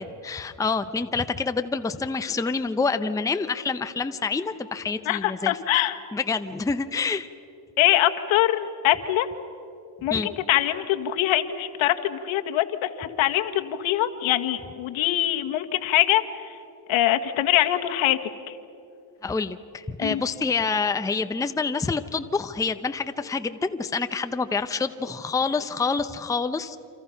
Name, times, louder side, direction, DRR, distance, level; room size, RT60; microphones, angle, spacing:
voice 1, 0.2-5.6 6.1-7.3 10.1-10.3 19.2-26.8, left 4 dB, 5° left, 9 dB, 0.7 m, -27 dB
voice 2, 5.0-6.0 7.8-9.3 10.0-16.5 16.9-18.2 18.5-18.6 20.0-20.2, left 13 dB, 70° left, 7 dB, 1.7 m, -23 dB
28.5 x 27.0 x 5.8 m, 2.7 s
cardioid pair, 105°, 50 cm